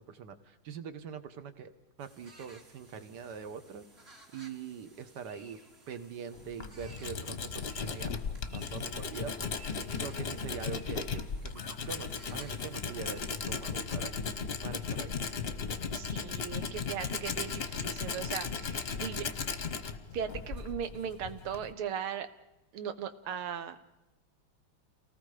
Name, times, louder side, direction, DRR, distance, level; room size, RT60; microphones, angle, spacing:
voice 1, 0.0-1.7 2.0-3.9 4.3-5.6 5.9-8.1 8.5-9.7 10.0-14.3 14.6-15.1, right 7 dB, 60° right, 11 dB, 1.7 m, -43 dB
sound 1, 2.0-13.8, right 2 dB, 30° right, 2.3 m, -57 dB
Tools, 6.3-21.7, left 5 dB, 40° left, 1.0 m, -36 dB
voice 2, 15.9-19.3 20.1-22.3 22.7-23.8, right 8 dB, 90° right, 10 dB, 2.0 m, -38 dB
29.0 x 19.0 x 5.0 m, 0.96 s
omnidirectional pair, 2.3 m